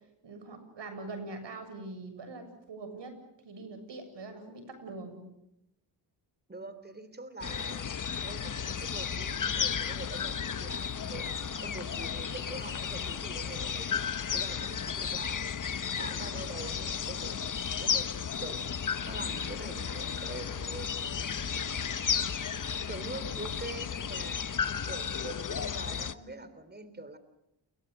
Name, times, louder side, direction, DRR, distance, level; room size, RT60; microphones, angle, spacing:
voice 1, 0.2-3.1 3.4-5.3, right 3 dB, 70° right, 8 dB, 7.3 m, -43 dB
voice 2, 6.5-7.9 8.2-11.3 11.5-15.5 16.0-17.4 17.8-18.1 18.4-18.6 19.1-22.1 22.9-27.2, right 2 dB, 20° right, 12 dB, 3.5 m, -44 dB
sound 1, 7.4-26.1, left 7 dB, 45° left, 1.2 m, -34 dB
29.5 x 23.0 x 6.7 m, 0.84 s
cardioid pair, 75°, 45 cm